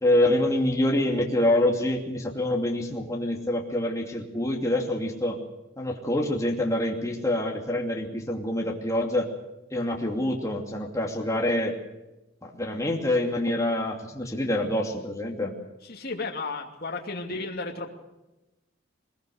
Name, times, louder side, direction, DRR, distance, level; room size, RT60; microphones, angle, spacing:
voice 1, 0.0-5.4 5.8-9.3 9.7-11.8 12.4-15.5, left 1 dB, 15° left, 0 dB, 2.6 m, -26 dB
voice 2, 15.8-17.9, left 3 dB, 50° left, 1 dB, 2.6 m, -33 dB
21.5 x 21.5 x 6.5 m, 0.97 s
head